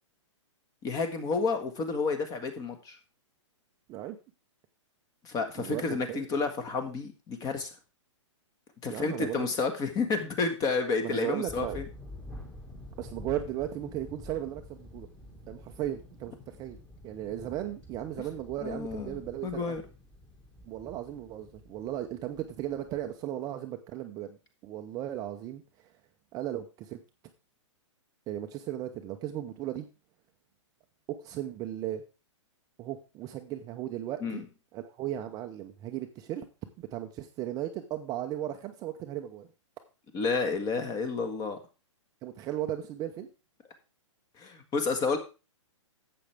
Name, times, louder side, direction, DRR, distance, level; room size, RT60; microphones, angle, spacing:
voice 1, 0.8-3.0 5.2-7.7 8.8-11.8 18.6-19.8 34.2-34.4 40.1-41.6 44.4-45.2, left 4 dB, 20° left, 7 dB, 1.6 m, -30 dB
voice 2, 5.6-6.3 8.9-9.4 11.0-11.8 13.0-15.1 15.5-16.8 17.0-19.8 20.6-24.4 24.6-25.6 26.3-27.0 28.3-29.9 31.1-32.0 32.8-34.4 34.7-36.5 36.8-39.5 42.2-43.3, right 12 dB, 25° right, 6 dB, 0.6 m, -36 dB
sound 1, 11.5-23.1, left 1 dB, 5° left, 1.7 m, -48 dB
11.5 x 7.7 x 3.4 m, 0.31 s
hypercardioid pair, 145°, 16 cm